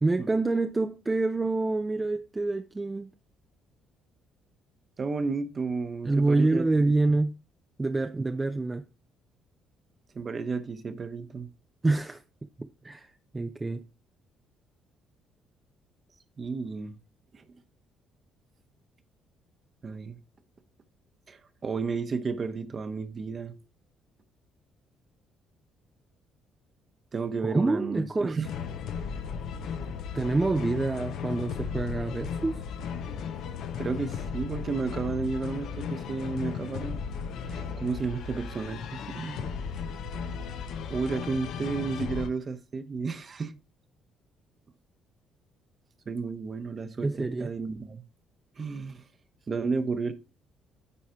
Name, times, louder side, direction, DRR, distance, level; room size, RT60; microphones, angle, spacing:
voice 1, 0.0-3.1 6.0-7.4 7.8-8.9 11.8-12.2 12.6-13.1 13.3-13.9 27.4-28.4 30.1-32.5 47.0-47.5, right 3 dB, 20° right, 0.6 m, -27 dB
voice 2, 5.0-6.9 10.1-11.5 16.4-17.0 17.3-17.4 19.8-20.2 21.3-23.5 27.1-28.5 33.8-37.0 37.5-39.5 40.9-43.5 46.1-48.0 48.6-49.0 49.5-50.1, right 4 dB, 40° right, 1.0 m, -32 dB
sound 1, 28.4-42.3, left 6 dB, 75° left, 0.8 m, -35 dB
9.9 x 4.2 x 4.5 m
supercardioid pair, 80°, 0 cm